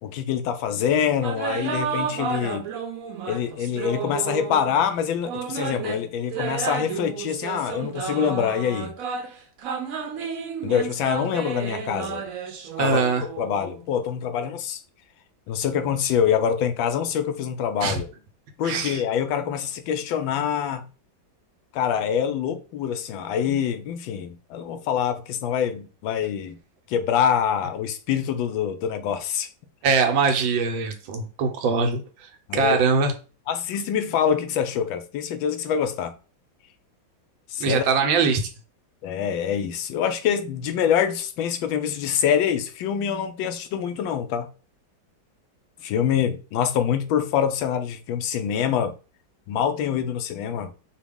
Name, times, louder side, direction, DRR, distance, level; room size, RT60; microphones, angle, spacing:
voice 1, 0.0-2.7 3.3-8.9 10.6-12.2 12.8-13.0 13.4-14.8 15.5-18.1 18.6-20.9 21.7-26.6 26.9-29.5 32.5-32.8 33.5-36.1 37.5-37.9 39.0-44.5 45.8-48.9 49.5-50.7, left 8 dB, 85° left, 1.3 m, -25 dB
sound 1, 1.2-4.7 5.2-13.8, right 6 dB, 65° right, 0.9 m, -32 dB
voice 2, 12.8-13.2 17.8-18.0 18.6-19.0 29.8-33.1 37.6-38.5, right 5 dB, 90° right, 1.5 m, -22 dB
5.0 x 2.3 x 3.5 m
omnidirectional pair, 2.1 m